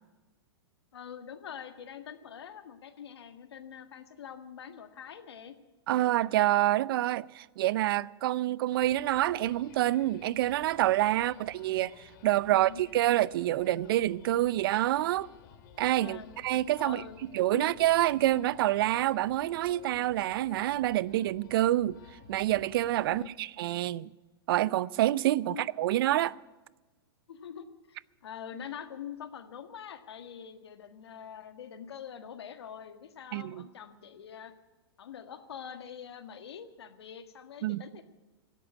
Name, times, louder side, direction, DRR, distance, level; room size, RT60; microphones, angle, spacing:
voice 1, 0.9-5.6 11.2-11.4 12.5-12.8 16.0-16.3 16.8-17.2 17.5-17.7 23.0-23.3 25.3-25.6 27.3-34.5 35.0-38.0, left 8 dB, 80° left, 1.6 m, -45 dB
voice 2, 5.9-15.3 15.8-17.0 17.3-22.0 22.3-24.1 24.5-26.4 33.3-33.6 37.6-37.8, right 14 dB, 60° right, 0.5 m, -27 dB
sound 1, 8.7-23.3, left 7 dB, 55° left, 2.3 m, -54 dB
17.0 x 8.3 x 9.7 m
hypercardioid pair, 125°, 13 cm